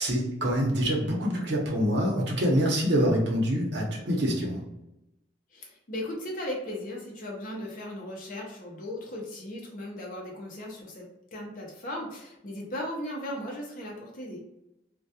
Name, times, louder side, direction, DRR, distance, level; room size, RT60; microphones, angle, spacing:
voice 1, 0.0-4.6, equal, 65° right, -2 dB, 0.7 m, -25 dB
voice 2, 5.5-11.0 11.3-14.4, left 1 dB, 45° left, -2 dB, 0.5 m, -37 dB
2.3 x 2.2 x 2.7 m, 0.89 s
head